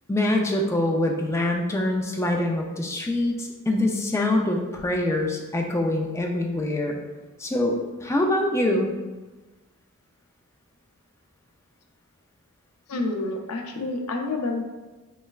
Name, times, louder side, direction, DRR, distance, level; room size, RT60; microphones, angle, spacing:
voice 1, 0.1-6.9 7.4-8.9, left 1 dB, 10° left, 1 dB, 0.3 m, -24 dB
voice 2, 12.9-14.6, left 2 dB, 75° left, 3 dB, 0.4 m, -28 dB
3.2 x 3.1 x 2.3 m, 1.2 s
head